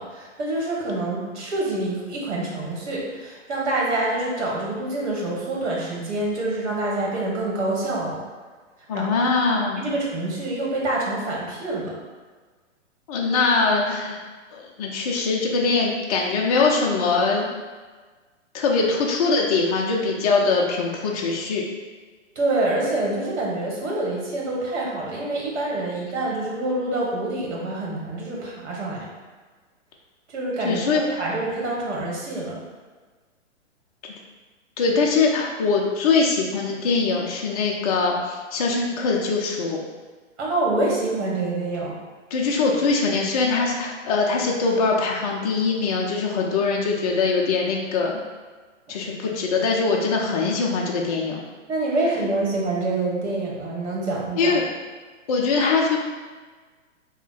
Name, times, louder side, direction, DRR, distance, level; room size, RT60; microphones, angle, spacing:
voice 1, 0.0-8.2 8.9-9.1 9.7-11.9 22.3-29.1 30.3-32.6 40.4-41.9 48.9-49.0 51.7-54.6, right 2 dB, 60° right, -3 dB, 1.3 m, -26 dB
voice 2, 8.9-9.9 13.1-14.2 14.5-17.5 18.5-21.6 30.6-31.2 34.0-34.1 34.8-39.8 42.3-48.2 48.9-51.4 54.4-54.6 55.3-56.0, left 4 dB, 35° left, -2 dB, 0.4 m, -22 dB
3.3 x 2.1 x 3.8 m, 1.4 s
hypercardioid pair, 130°, 38 cm